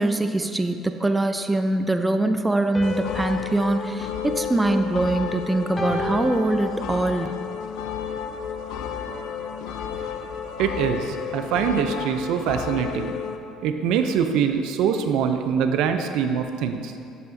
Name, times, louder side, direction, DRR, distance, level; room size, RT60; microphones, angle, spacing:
voice 1, 0.0-7.3, right 2 dB, 10° right, 8 dB, 0.3 m, -23 dB
sound 1, 2.7-5.2 5.8-7.3, left 1 dB, 20° left, 0.8 m, -35 dB
sound 2, 2.8-13.4, left 8 dB, 80° left, 0.4 m, -32 dB
sound 3, 4.1-12.1, left 1 dB, 45° left, 1.6 m, -47 dB
voice 2, 10.6-13.1 13.6-16.9, right 7 dB, 75° right, 7 dB, 0.4 m, -23 dB
10.5 x 5.6 x 2.6 m, 2.5 s
cardioid pair, 110°, 0 cm